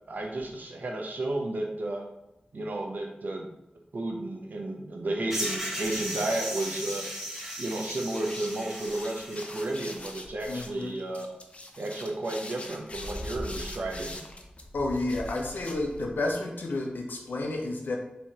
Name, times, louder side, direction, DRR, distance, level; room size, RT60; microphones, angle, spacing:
voice 1, 0.1-2.1 2.5-3.5 3.9-7.0 7.6-11.3 11.8-14.2, right 2 dB, 70° right, 1 dB, 0.7 m, -32 dB
sound 1, 5.3-10.0, equal, 10° right, 1.3 m, -36 dB
sound 2, 5.9-16.3, left 1 dB, 40° left, 0.5 m, -42 dB
voice 2, 10.5-10.9 14.7-18.0, left 2 dB, 90° left, 1 dB, 0.7 m, -31 dB
4.6 x 3.1 x 2.8 m, 0.88 s
wide cardioid pair, 80°, 3 cm